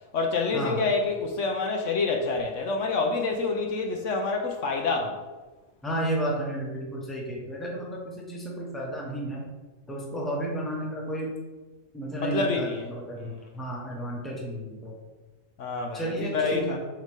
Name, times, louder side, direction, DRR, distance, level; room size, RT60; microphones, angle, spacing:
voice 1, 0.1-5.2 12.2-12.9 15.6-16.8, left 4 dB, 65° left, 2 dB, 1.1 m, -27 dB
voice 2, 5.8-9.4 9.9-11.3 11.9-15.0 15.9-16.8, right 1 dB, ahead, -3 dB, 1.0 m, -32 dB
7.3 x 3.9 x 3.6 m, 1.2 s
omnidirectional pair, 1.4 m